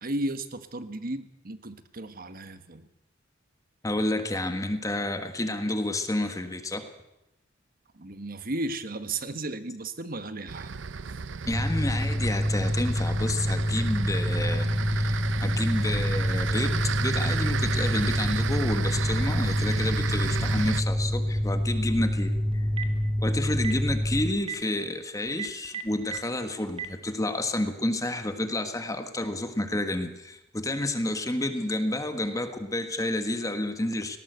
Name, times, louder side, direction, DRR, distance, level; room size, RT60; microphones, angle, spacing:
voice 1, 0.0-2.9 7.9-10.8 11.1-11.2, right 2 dB, 50° right, 11 dB, 1.4 m, -34 dB
voice 2, 3.8-6.9 11.5-22.7 23.2-34.2, left 1 dB, 20° left, 8 dB, 1.5 m, -30 dB
sound 1, 10.5-20.8, right 5 dB, 75° right, 0.7 m, -33 dB
Mechanical fan, 11.5-24.2, equal, ahead, 4.7 m, -27 dB
Telephone, 22.5-23.0 23.5-23.8 24.4-24.6 25.3-26.2 26.7-26.9, right 8 dB, 30° right, 1.9 m, -33 dB
18.5 x 18.0 x 8.0 m, 0.91 s
head